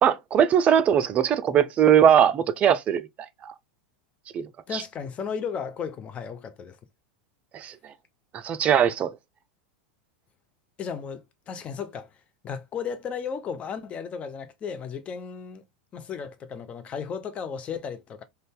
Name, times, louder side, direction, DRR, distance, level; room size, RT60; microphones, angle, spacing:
voice 1, 0.0-3.1 3.4-3.5 4.3-4.8 7.5-7.7 8.3-9.1, right 9 dB, 30° right, 0.4 m, -20 dB
voice 2, 4.7-6.8 10.8-12.1 12.4-15.6 15.9-18.2, left 6 dB, 30° left, 0.5 m, -34 dB
2.6 x 2.2 x 3.6 m
hypercardioid pair, 90°, 4 cm